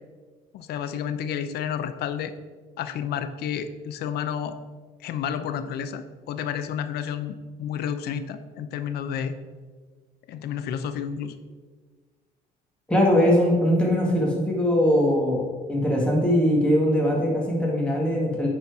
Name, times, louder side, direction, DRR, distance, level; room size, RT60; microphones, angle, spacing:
voice 1, 0.5-2.3 2.8-4.6 5.0-9.4 10.3-11.4, left 8 dB, 70° left, 11 dB, 0.7 m, -30 dB
voice 2, 12.9-18.5, equal, 5° left, -2 dB, 1.9 m, -21 dB
9.5 x 4.4 x 4.7 m, 1.5 s
cardioid pair, 110°, 17 cm